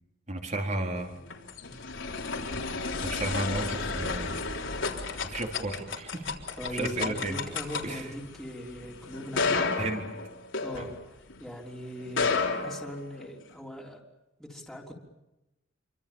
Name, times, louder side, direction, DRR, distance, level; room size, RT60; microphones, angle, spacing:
voice 1, 0.3-1.1 3.0-4.3 5.3-6.2 6.7-7.4 7.8-8.0 9.8-10.0 10.8-10.9, right 2 dB, 40° right, 2 dB, 4.0 m, -33 dB
sound 1, 1.0-11.4 12.0-13.5, left 4 dB, 80° left, 3.7 m, -32 dB
voice 2, 6.6-9.7 10.6-14.0 14.4-15.0, equal, ahead, -1 dB, 3.6 m, -40 dB
28.0 x 24.5 x 7.2 m, 0.97 s
head